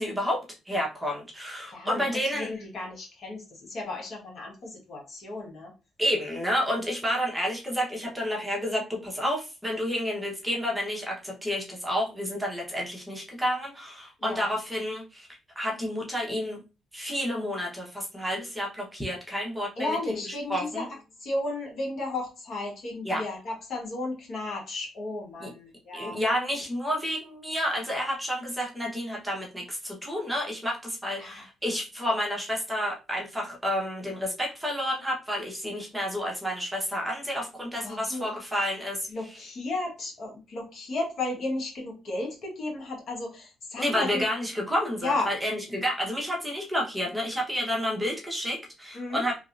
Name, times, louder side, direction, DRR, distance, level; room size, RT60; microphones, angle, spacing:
voice 1, 0.0-2.5 6.0-15.3 15.6-16.6 16.9-20.9 23.0-23.2 25.4-25.5 25.9-39.4 43.8-49.4, equal, 10° right, -2 dB, 1.0 m, -30 dB
voice 2, 1.7-2.0 2.3-5.7 14.2-14.5 19.8-20.9 21.2-26.2 31.2-31.4 37.8-38.3 39.1-44.2 45.0-45.3 48.9-49.2, left 2 dB, 60° left, -1 dB, 1.4 m, -33 dB
3.1 x 2.7 x 2.5 m, 0.30 s
cardioid pair, 90°, 0 cm